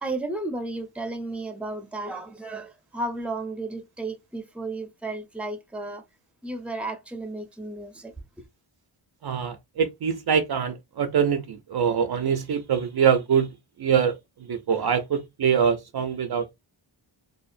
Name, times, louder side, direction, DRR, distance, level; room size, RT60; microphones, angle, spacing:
voice 1, 0.0-6.0 6.4-8.1, right 2 dB, 5° right, 0.7 m, -33 dB
voice 2, 9.2-13.5 13.8-14.2 14.5-16.5, right 7 dB, 55° right, 0.5 m, -24 dB
2.7 x 2.4 x 2.5 m
cardioid pair, 45°, 49 cm